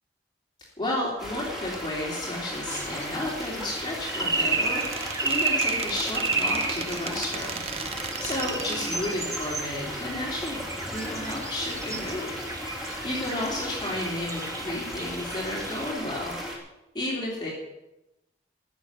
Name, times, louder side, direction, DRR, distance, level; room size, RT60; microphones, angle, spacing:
voice 1, 0.8-7.6 7.9-12.4 12.7-16.3 16.9-17.5, left 1 dB, 25° left, -4 dB, 3.1 m, -32 dB
sound 1, 1.2-16.6, equal, ahead, 3.1 m, -36 dB
sound 2, 2.7-15.9, right 3 dB, 20° right, 1.2 m, -32 dB
Squeak, 4.2-9.4, right 6 dB, 35° right, 0.6 m, -38 dB
14.5 x 7.0 x 9.4 m, 0.93 s
head